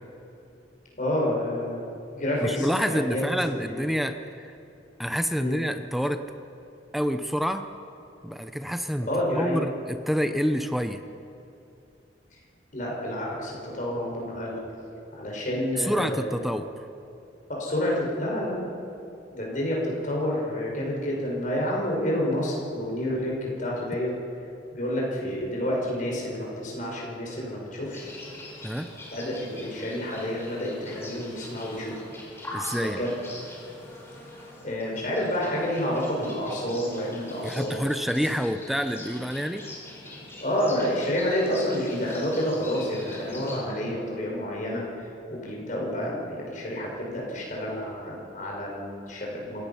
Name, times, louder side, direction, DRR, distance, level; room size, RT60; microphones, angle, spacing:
voice 1, 1.0-1.8 2.1-3.9 5.4-5.6 9.0-9.6 12.7-14.6 15.1-16.4 17.5-18.6 19.3-24.1 24.7-28.1 29.1-32.0 32.8-33.1 34.6-37.8 40.4-44.8 45.3-49.7, equal, 45° left, -3 dB, 5.8 m, -29 dB
voice 2, 2.4-4.5 5.0-6.2 6.9-7.7 8.2-11.0 15.8-16.9 28.6-28.9 32.5-33.0 36.7-36.8 37.4-39.7 46.0-46.1, equal, ahead, 8 dB, 0.6 m, -28 dB
sound 1, 27.9-43.6, left 1 dB, 15° left, 4.9 m, -43 dB
26.5 x 17.0 x 5.8 m, 2.7 s
head